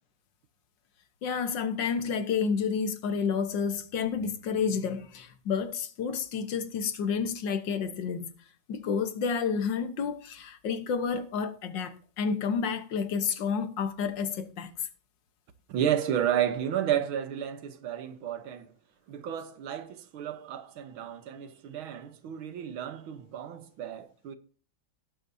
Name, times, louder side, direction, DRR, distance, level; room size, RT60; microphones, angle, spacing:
voice 1, 1.2-8.3 8.7-14.9, left 6 dB, 65° left, 1.7 m, -30 dB
voice 2, 15.7-18.7 19.1-24.3, right 10 dB, 85° right, 1.9 m, -32 dB
18.0 x 8.8 x 2.7 m
omnidirectional pair, 2.2 m